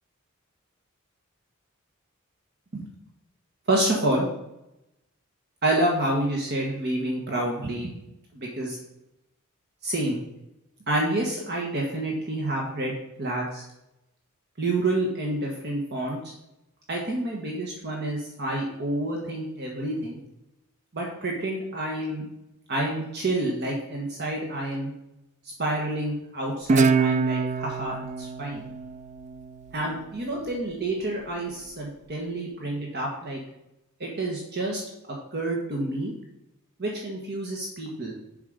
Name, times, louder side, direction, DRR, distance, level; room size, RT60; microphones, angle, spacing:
voice 1, 3.7-4.3 5.6-7.9 8.3-8.8 9.8-10.2 10.9-12.9 13.2-13.6 14.6-16.2 16.9-20.2 20.9-22.3 22.7-24.9 25.6-28.6 29.7-33.4 34.0-34.8 35.3-36.1 36.8-38.1, right 1 dB, 50° right, -1 dB, 1.5 m, -28 dB
Guitar, 26.7-29.9, right 4 dB, 35° right, 0.3 m, -25 dB
7.5 x 5.5 x 5.1 m, 0.88 s
head